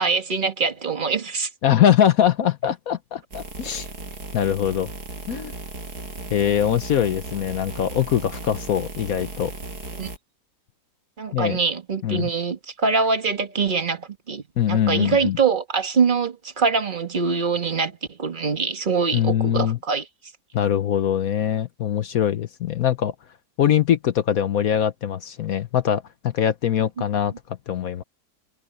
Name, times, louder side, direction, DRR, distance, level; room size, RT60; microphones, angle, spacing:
voice 1, 0.0-1.5 10.0-10.1 11.2-20.0 27.0-27.1, right 5 dB, 30° right, 1.4 m, -24 dB
voice 2, 1.6-3.9 4.3-4.9 5.3-5.5 6.3-9.5 11.3-11.6 12.0-12.3 14.6-15.4 19.1-19.8 20.5-23.1 23.6-27.3 27.7-28.0, left 10 dB, 65° left, 1.2 m, -22 dB
sound 1, 3.3-10.2, right 2 dB, 70° right, 6.4 m, -36 dB
omnidirectional pair, 1.7 m